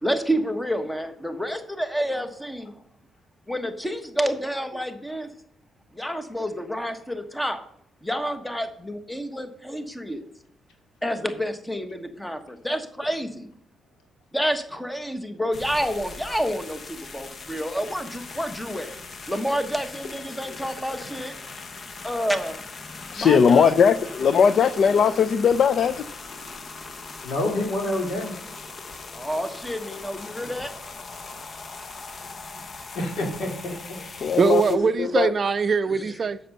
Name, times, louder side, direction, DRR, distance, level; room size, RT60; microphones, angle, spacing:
voice 1, 0.0-2.7 3.5-5.3 5.9-7.6 8.0-10.3 11.0-13.5 14.3-18.9 19.3-21.3 22.0-22.6 23.2-23.7 29.1-30.7 34.1-34.4, equal, 5° left, 1.2 m, -29 dB
sound 1, 15.5-34.8, left 4 dB, 40° left, 0.9 m, -40 dB
voice 2, 23.1-26.0 34.2-34.6 35.0-35.3, left 6 dB, 55° left, 0.5 m, -19 dB
voice 3, 27.2-28.3 32.9-34.0, left 1 dB, 75° left, 2.5 m, -28 dB
voice 4, 34.4-36.4, right 5 dB, 40° right, 0.5 m, -22 dB
7.8 x 6.6 x 6.4 m
cardioid pair, 90°, 0 cm